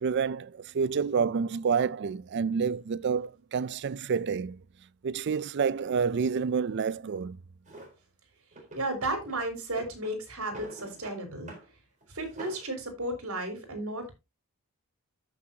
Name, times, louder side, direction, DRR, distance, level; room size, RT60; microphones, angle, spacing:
voice 1, 0.0-4.6 5.0-7.4, right 6 dB, 50° right, 0.4 m, -28 dB
Drawer open or close, 7.7-7.9 8.5-9.4 9.7-11.2 11.5-11.7 12.0-12.7, right 2 dB, 35° right, 4.0 m, -46 dB
voice 2, 8.8-11.5 12.1-14.2, right 1 dB, 70° right, 3.9 m, -34 dB
13.5 x 6.1 x 2.8 m
head